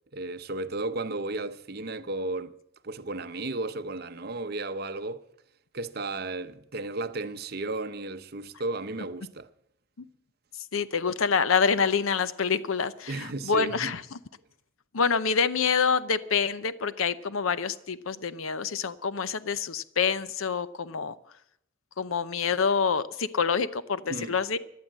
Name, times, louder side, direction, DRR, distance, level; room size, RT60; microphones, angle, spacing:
voice 1, 0.1-2.5 2.8-5.3 5.7-9.5 13.1-13.9 24.1-24.4, right 2 dB, 50° right, 0.8 m, -34 dB
voice 2, 10.7-14.0 14.9-21.1 22.0-24.6, left 6 dB, 80° left, 0.7 m, -26 dB
17.0 x 11.5 x 7.4 m
head